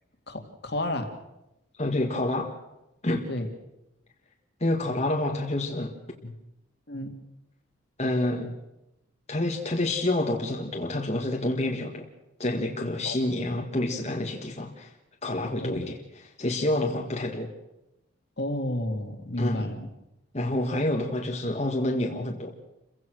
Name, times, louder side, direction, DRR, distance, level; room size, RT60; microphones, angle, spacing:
voice 1, 0.3-1.1 3.3-3.5 6.9-7.1 13.0-13.2 15.6-15.9 18.4-19.8, left 1 dB, 60° left, 5 dB, 2.4 m, -31 dB
voice 2, 1.8-2.5 3.0-3.3 4.6-5.9 6.2-6.3 8.0-8.5 9.3-12.0 12.4-14.9 15.2-17.5 19.4-19.7 20.3-22.5, left 1 dB, 35° left, 1 dB, 1.8 m, -28 dB
29.0 x 16.0 x 6.3 m, 0.91 s
head